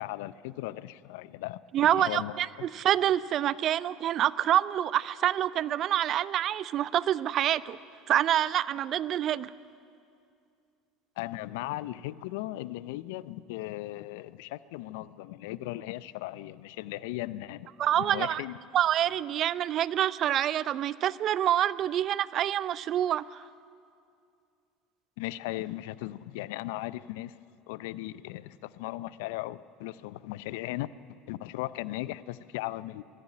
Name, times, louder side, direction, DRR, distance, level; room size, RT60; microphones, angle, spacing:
voice 1, 0.0-2.7 11.2-18.6 25.2-27.4 27.7-30.9 31.3-33.0, left 16 dB, 70° left, 18 dB, 0.5 m, -37 dB
voice 2, 1.7-7.8 8.1-9.5 17.8-18.4 18.7-23.4, right 11 dB, 50° right, 19 dB, 0.5 m, -27 dB
22.5 x 14.5 x 9.7 m, 2.4 s
hypercardioid pair, 70°, 0 cm